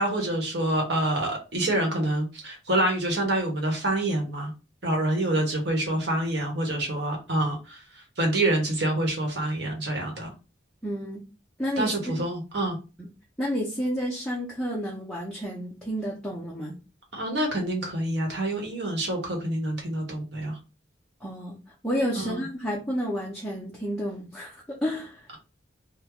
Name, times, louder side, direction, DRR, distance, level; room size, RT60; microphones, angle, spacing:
voice 1, 0.0-4.5 4.8-10.3 11.8-12.8 17.1-20.6 22.1-22.4, right 1 dB, 60° right, 1 dB, 1.1 m, -27 dB
voice 2, 10.8-11.2 11.6-12.3 13.0-13.1 13.4-16.8 21.2-21.6 21.8-25.3, equal, 5° left, -5 dB, 0.7 m, -30 dB
3.0 x 2.2 x 3.6 m, 0.30 s
head